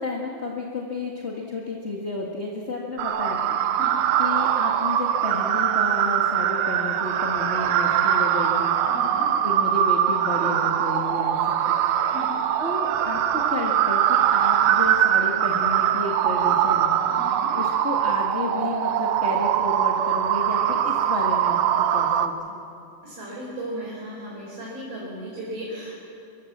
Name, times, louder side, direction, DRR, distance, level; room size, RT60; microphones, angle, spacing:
voice 1, 0.0-3.5 4.2-8.8 9.4-11.4 11.7-11.8 12.6-16.9 17.5-22.3, left 3 dB, 25° left, -2 dB, 1.6 m, -31 dB
sound 1, 3.0-22.3, right 10 dB, 90° right, 2.5 m, -22 dB
voice 2, 8.9-9.2 12.1-12.3 17.1-17.5 23.0-25.9, equal, 45° right, -5 dB, 5.4 m, -36 dB
25.0 x 23.0 x 7.4 m, 2.6 s
omnidirectional pair, 3.8 m